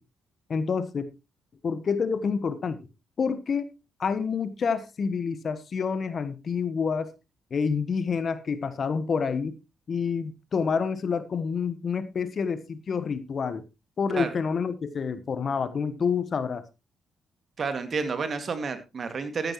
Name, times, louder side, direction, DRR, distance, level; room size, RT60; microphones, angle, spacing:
voice 1, 0.5-1.1 1.6-2.8 3.2-3.6 4.0-7.1 7.5-9.5 9.9-13.6 14.0-16.6, left 5 dB, 50° left, 13 dB, 1.1 m, -28 dB
voice 2, 17.6-19.5, right 4 dB, 50° right, 8 dB, 2.1 m, -30 dB
13.5 x 10.5 x 3.1 m, 0.27 s
hypercardioid pair, 40°, 0 cm